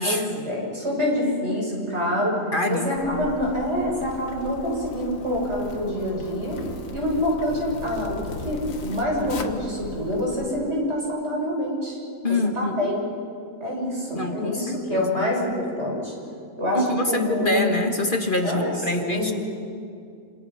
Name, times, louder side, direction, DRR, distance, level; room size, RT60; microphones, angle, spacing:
voice 1, 0.0-2.3 2.7-6.6 6.9-8.2 8.4-12.0 12.3-13.0 13.6-16.1 16.6-17.7 18.0-18.1 18.4-19.3, left 1 dB, 55° right, -3 dB, 7.7 m, -26 dB
voice 2, 2.5-3.3 12.2-12.9 14.1-15.3 16.7-19.3, left 2 dB, 40° left, 3 dB, 1.8 m, -26 dB
Zipper (clothing), 2.9-10.5, left 4 dB, 85° left, 1.9 m, -38 dB
28.5 x 27.5 x 5.8 m, 2.3 s
omnidirectional pair, 1.4 m